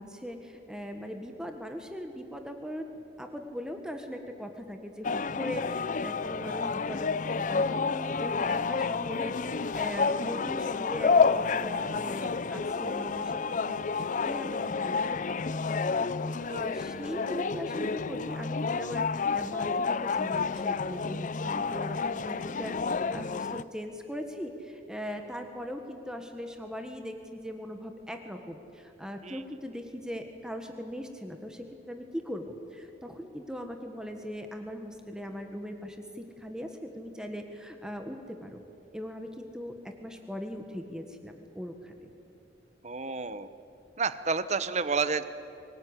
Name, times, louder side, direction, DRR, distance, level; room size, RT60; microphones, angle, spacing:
voice 1, 0.0-15.3 16.6-38.6 38.9-42.1, equal, 5° right, 5 dB, 1.6 m, -40 dB
sound 1, 5.0-23.6, left 4 dB, 45° left, 0.5 m, -30 dB
voice 2, 16.5-16.8 29.2-29.4 42.8-43.5 44.0-45.2, right 4 dB, 40° right, 13 dB, 1.0 m, -30 dB
23.5 x 19.5 x 10.0 m, 2.8 s
head